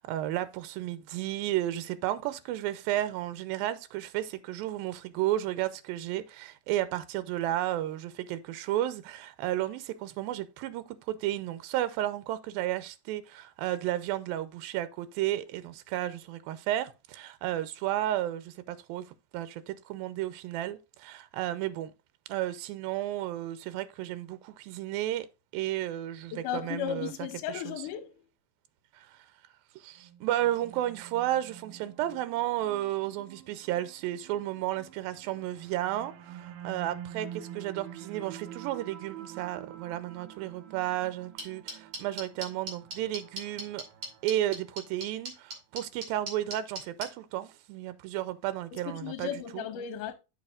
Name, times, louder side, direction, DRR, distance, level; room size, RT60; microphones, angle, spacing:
voice 1, 0.0-19.0 19.3-21.9 22.3-25.3 25.5-27.1 27.5-27.7 28.9-29.2 29.8-43.8 44.2-49.7, right 13 dB, 90° right, 2.5 m, -33 dB
voice 2, 26.3-28.2 48.7-50.1, left 10 dB, 75° left, 2.1 m, -35 dB
sound 1, 30.0-45.3, right 10 dB, 75° right, 2.2 m, -48 dB
sound 2, 41.4-47.1, right 2 dB, 45° right, 3.9 m, -36 dB
14.0 x 4.8 x 2.4 m
omnidirectional pair, 4.1 m